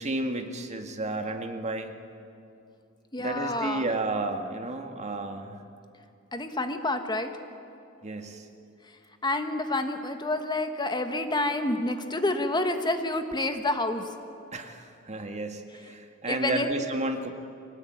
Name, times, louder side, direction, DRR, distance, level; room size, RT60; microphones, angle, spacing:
voice 1, 0.0-1.9 3.2-5.6 8.0-8.5 14.5-17.3, right 2 dB, 35° right, 5 dB, 1.8 m, -32 dB
voice 2, 3.1-3.8 6.3-7.3 9.2-14.1 16.3-16.7, left 2 dB, 20° left, 7 dB, 1.4 m, -28 dB
24.0 x 19.0 x 9.4 m, 2.6 s
head